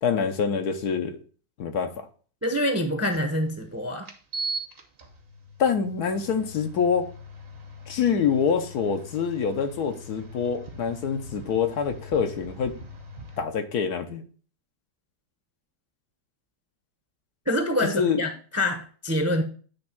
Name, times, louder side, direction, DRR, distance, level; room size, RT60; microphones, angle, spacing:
voice 1, 0.0-1.2 1.6-2.1 5.6-7.1 7.9-12.7 13.4-14.2 17.9-18.2, left 6 dB, 70° left, 6 dB, 1.3 m, -25 dB
voice 2, 2.4-4.1 17.5-19.4, left 1 dB, 15° right, 5 dB, 0.7 m, -26 dB
sound 1, 3.1-3.2 4.0-13.4, right 1 dB, 40° right, 1.0 m, -40 dB
8.6 x 3.5 x 5.9 m, 0.41 s
omnidirectional pair, 1.8 m